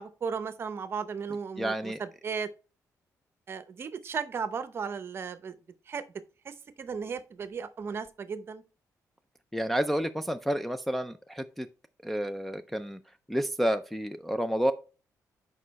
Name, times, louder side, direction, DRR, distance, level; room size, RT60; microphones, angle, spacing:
voice 1, 0.0-2.5 3.5-5.6 5.9-6.0 6.4-8.6, right 6 dB, 40° right, 0.7 m, -35 dB
voice 2, 1.6-2.0 9.5-11.7 12.0-13.0 13.3-14.7, equal, ahead, 0.3 m, -30 dB
6.6 x 5.0 x 4.0 m
cardioid pair, 160°, 6 cm